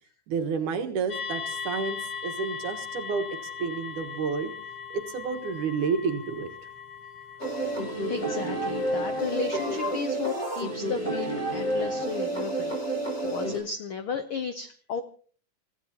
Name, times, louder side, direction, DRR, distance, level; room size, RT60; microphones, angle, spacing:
voice 1, 0.3-3.2 3.6-4.5 4.9-6.5, right 5 dB, 75° right, 6 dB, 2.9 m, -30 dB
sound 1, 1.1-9.8, left 6 dB, 45° left, 1.2 m, -39 dB
sound 2, 7.4-13.6, right 1 dB, 20° left, 5.6 m, -30 dB
voice 2, 8.1-12.8 13.2-15.0, left 6 dB, 85° left, 9 dB, 1.1 m, -34 dB
29.5 x 15.0 x 2.9 m, 0.43 s
omnidirectional pair, 3.6 m